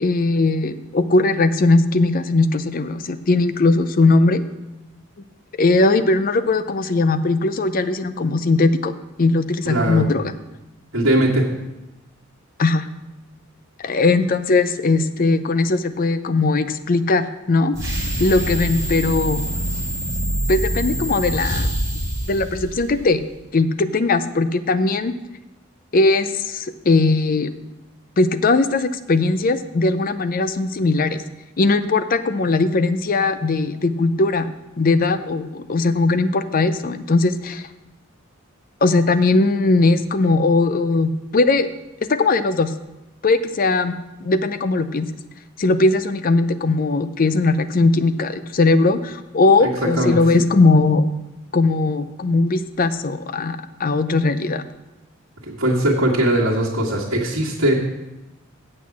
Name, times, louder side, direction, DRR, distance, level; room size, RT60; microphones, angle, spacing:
voice 1, 0.0-4.4 5.6-8.9 9.2-10.3 12.6-12.9 13.8-17.9 18.2-19.4 20.5-21.7 22.3-23.2 23.5-25.1 25.9-27.5 28.2-31.2 31.6-34.5 34.8-37.7 38.8-41.7 42.0-42.7 43.2-43.9 44.2-45.1 45.6-51.1 51.5-54.6, left 3 dB, 40° left, 12 dB, 0.5 m, -19 dB
voice 2, 9.6-10.1 10.9-11.4 49.6-50.2 55.5-57.7, right 1 dB, 80° right, -8 dB, 1.8 m, -20 dB
sound 1, 17.7-23.2, right 1 dB, 15° right, 2.2 m, -25 dB
8.5 x 7.6 x 6.0 m, 0.99 s
head